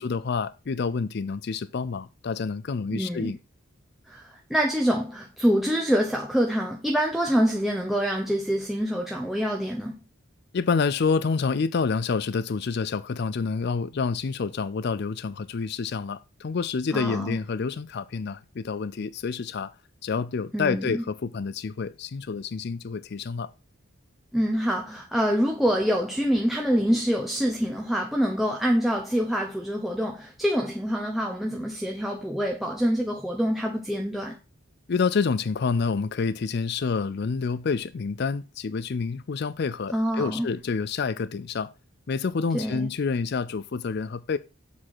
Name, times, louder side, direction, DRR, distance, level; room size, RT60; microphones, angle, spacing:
voice 1, 0.0-3.4 10.5-19.7 20.0-23.5 34.9-41.7 42.1-44.4, left 5 dB, 50° left, 0.4 m, -28 dB
voice 2, 2.9-3.4 4.1-10.0 16.9-17.4 20.5-21.0 24.3-34.4 39.9-40.5 42.5-42.9, equal, ahead, 0.8 m, -26 dB
7.5 x 4.2 x 6.4 m
head